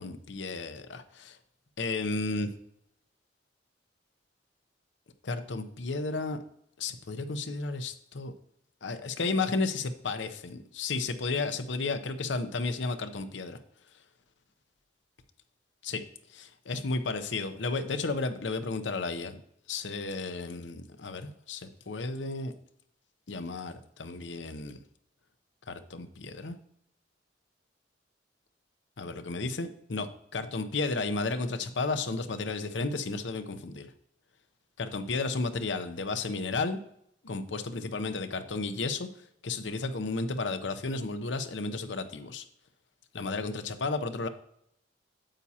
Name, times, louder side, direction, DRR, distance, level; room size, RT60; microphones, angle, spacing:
voice 1, 0.0-1.4 1.8-2.5 5.2-6.4 6.8-8.3 8.8-13.6 15.8-16.0 16.3-19.4 19.7-22.5 23.3-24.8 25.7-26.6 29.0-33.9 34.8-36.8 37.2-39.1 39.4-42.4 43.1-44.3, left 3 dB, 80° left, 10 dB, 0.7 m, -33 dB
8.9 x 8.4 x 2.8 m, 0.74 s
head